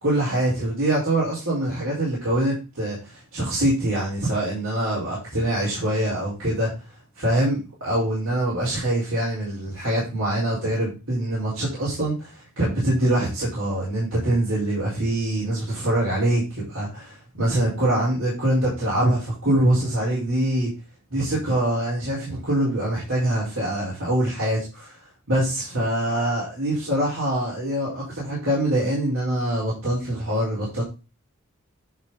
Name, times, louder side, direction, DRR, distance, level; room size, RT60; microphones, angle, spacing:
voice 1, 0.0-6.7 7.2-20.7 21.1-24.9 25.3-30.8, right 1 dB, 65° right, -8 dB, 4.5 m, -24 dB
10.5 x 4.4 x 4.1 m, 0.30 s
head